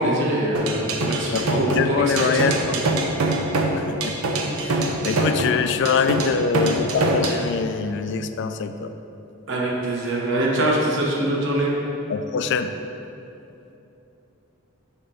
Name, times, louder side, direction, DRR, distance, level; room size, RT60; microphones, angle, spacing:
voice 1, 0.0-2.4 9.5-11.7, right 1 dB, 55° right, -4 dB, 1.1 m, -23 dB
sound 1, 0.5-7.4, right 2 dB, 80° right, 0.6 m, -23 dB
voice 2, 1.3-2.8 3.7-4.1 4.6-4.8 5.0-8.9 12.1-12.8, left 6 dB, 55° left, 9 dB, 0.3 m, -24 dB
8.3 x 2.9 x 5.5 m, 2.9 s
head